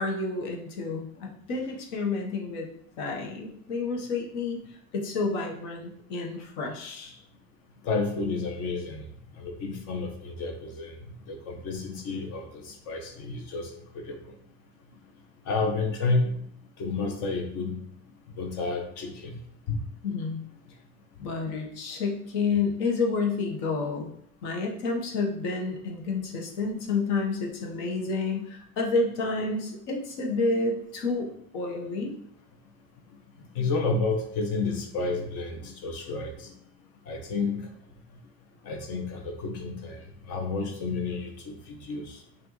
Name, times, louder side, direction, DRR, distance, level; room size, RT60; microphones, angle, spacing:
voice 1, 0.0-2.7 3.0-4.6 4.9-7.2 20.0-20.4 21.2-24.1 24.4-31.3 31.5-32.1, left 3 dB, 75° left, 0 dB, 1.2 m, -29 dB
voice 2, 7.8-9.1 9.4-11.0 11.3-14.3 15.4-16.4 16.8-17.8 18.4-19.4 19.7-19.8 33.5-36.5 37.1-37.7 38.6-42.2, left 3 dB, 55° left, 3 dB, 1.1 m, -31 dB
5.9 x 2.6 x 3.1 m, 0.68 s
cardioid pair, 160°, 30 cm